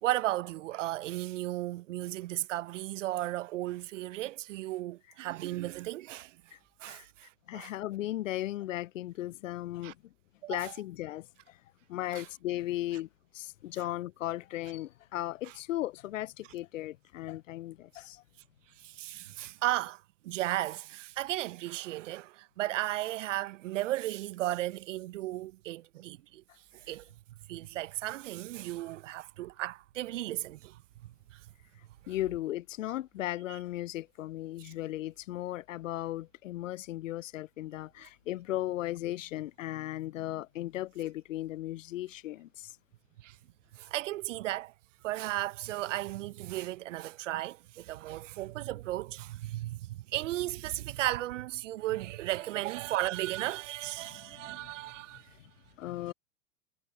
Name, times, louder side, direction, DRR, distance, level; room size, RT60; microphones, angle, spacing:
voice 1, 0.0-6.4 6.8-7.7 9.8-9.9 10.4-10.7 12.1-12.2 18.8-26.4 26.7-27.1 27.5-30.8 31.3-31.4 33.5-33.6 43.2-43.4 43.7-44.7 45.0-55.3, right 16 dB, 65° right, 1.1 m, -35 dB
voice 2, 7.5-10.0 10.5-11.6 11.9-18.2 32.1-42.7 54.0-54.7 55.4-55.5 55.8-56.1, left 15 dB, 70° left, 0.8 m, -36 dB
hypercardioid pair, 100°, 40 cm